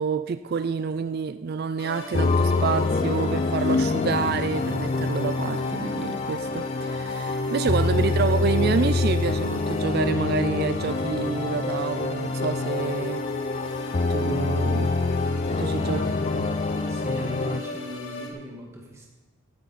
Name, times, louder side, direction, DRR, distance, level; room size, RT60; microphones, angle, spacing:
voice 1, 0.0-13.2 14.1-15.0 15.6-16.0 16.4-16.5, right 5 dB, 45° right, 12 dB, 0.3 m, -28 dB
sound 1, 1.8-18.3, left 1 dB, 55° left, 2.0 m, -37 dB
sound 2, 2.1-17.6, left 3 dB, 30° left, 0.4 m, -26 dB
voice 2, 15.8-16.2 16.9-19.1, equal, 15° right, -2 dB, 2.0 m, -38 dB
16.0 x 10.5 x 4.1 m, 1.3 s
head